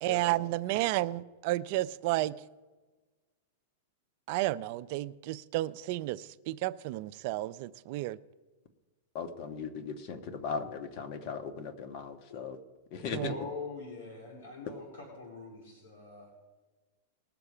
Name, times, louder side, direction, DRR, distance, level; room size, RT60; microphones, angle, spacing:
voice 1, 0.0-2.3 4.3-8.2 13.1-13.3, right 17 dB, 50° right, 0.4 m, -32 dB
voice 2, 9.1-12.6 12.9-13.3, left 5 dB, 45° left, 1.3 m, -38 dB
voice 3, 13.3-16.3, left 4 dB, 85° left, 3.2 m, -43 dB
20.0 x 6.8 x 4.9 m
hypercardioid pair, 135°, 0 cm